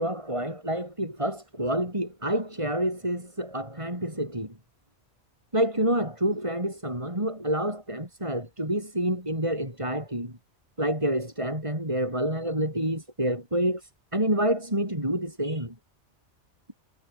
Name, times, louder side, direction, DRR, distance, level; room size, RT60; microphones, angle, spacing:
voice 1, 0.0-4.5 5.5-10.3 10.8-13.8 14.1-15.7, right 1 dB, 25° right, 8.1 m, -28 dB
omnidirectional pair, 1.2 m